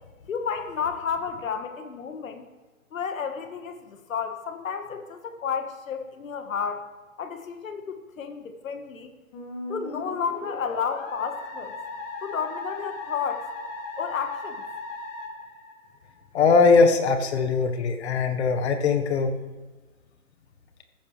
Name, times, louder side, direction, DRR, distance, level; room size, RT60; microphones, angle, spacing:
voice 1, 0.3-2.5 2.9-6.8 7.2-9.1 9.7-11.7 12.2-13.5 14.0-14.6, left 6 dB, 65° left, 7 dB, 1.6 m, -31 dB
Musical instrument, 9.3-16.2, left 3 dB, 30° left, 2.1 m, -37 dB
voice 2, 16.3-19.3, left 4 dB, 50° left, 7 dB, 1.4 m, -20 dB
14.5 x 14.5 x 3.3 m, 1.2 s
hypercardioid pair, 155°, 42 cm